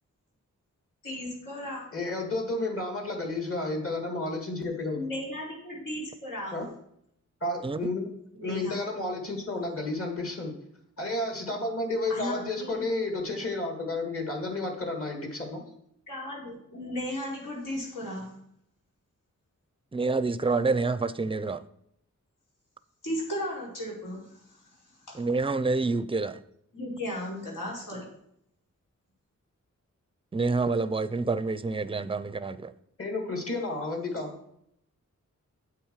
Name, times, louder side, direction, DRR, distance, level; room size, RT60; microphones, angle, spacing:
voice 1, 1.0-1.8 4.9-6.6 8.4-8.8 12.1-12.8 16.1-18.3 23.0-24.7 25.1-25.2 26.7-28.1, left 1 dB, 90° left, 4.4 m, -35 dB
voice 2, 1.9-5.0 6.5-6.7 7.4-8.1 8.4-10.5 11.0-15.7 33.0-34.3, left 2 dB, 45° left, 2.4 m, -31 dB
voice 3, 19.9-21.6 25.1-26.4 30.3-32.7, right 3 dB, 20° right, 0.4 m, -27 dB
8.9 x 7.9 x 4.8 m
wide cardioid pair, 115°, 31 cm